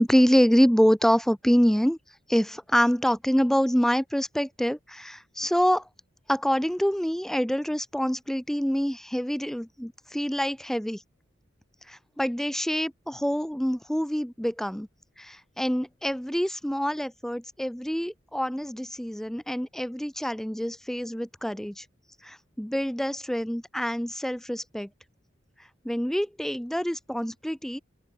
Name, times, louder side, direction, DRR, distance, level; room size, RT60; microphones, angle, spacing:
voice 1, 0.0-2.0 2.3-5.9 6.3-11.0 11.9-14.9 15.2-21.8 22.2-24.9 25.8-27.8, equal, ahead, 0.6 m, -26 dB
open air
head